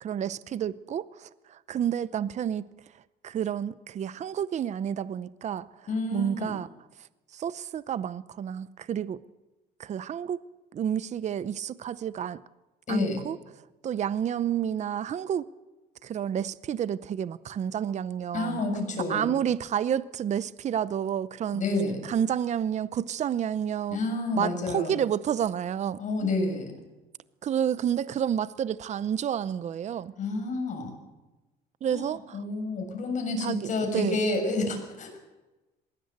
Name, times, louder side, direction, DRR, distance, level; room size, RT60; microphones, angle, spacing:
voice 1, 0.0-2.7 2.9-6.7 7.0-9.2 9.8-10.4 10.7-12.4 12.9-15.5 16.0-18.6 19.1-21.6 22.0-24.0 24.3-26.3 27.4-30.1 31.8-32.4 33.4-34.2, right 9 dB, 45° right, 0.7 m, -30 dB
voice 2, 5.9-6.5 12.9-13.2 18.3-19.3 21.5-22.0 23.9-24.9 26.0-26.8 30.2-30.9 31.9-35.2, left 2 dB, 45° left, 7.0 m, -29 dB
21.0 x 17.0 x 8.1 m
cardioid pair, 110°, 17 cm